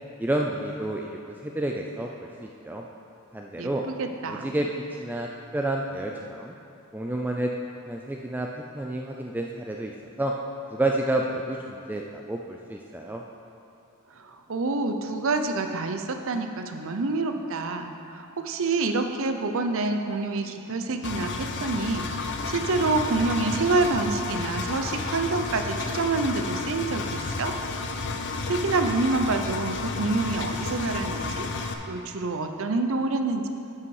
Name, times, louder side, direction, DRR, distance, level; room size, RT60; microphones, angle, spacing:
voice 1, 0.2-2.8 3.3-3.8 4.3-4.7 5.0-6.5 6.9-7.5 7.9-8.5 8.7-9.9 10.2-10.3 10.7-13.2, right 1 dB, 10° right, 0 dB, 0.4 m, -30 dB
voice 2, 3.6-4.5 14.2-27.5 28.5-33.5, right 3 dB, 60° right, 6 dB, 0.6 m, -27 dB
Engine, 21.0-31.7, left 3 dB, 55° left, 0.6 m, -31 dB
11.5 x 5.7 x 4.8 m, 2.7 s
head